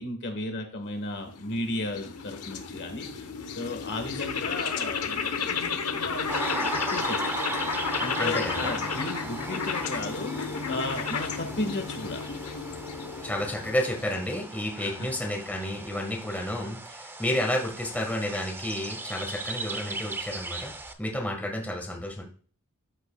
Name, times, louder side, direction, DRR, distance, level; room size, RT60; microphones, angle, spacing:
voice 1, 0.0-7.3 7.7-12.2 14.8-15.1, left 2 dB, 55° left, 5 dB, 1.6 m, -35 dB
sound 1, 1.1-14.6, left 5 dB, 90° left, 0.9 m, -32 dB
sound 2, 6.3-20.9, right 2 dB, 10° right, 0.6 m, -38 dB
voice 2, 8.2-8.7 13.2-20.7 21.0-22.2, left 1 dB, 5° left, 1 dB, 1.4 m, -31 dB
13.5 x 5.4 x 2.3 m, 0.42 s
head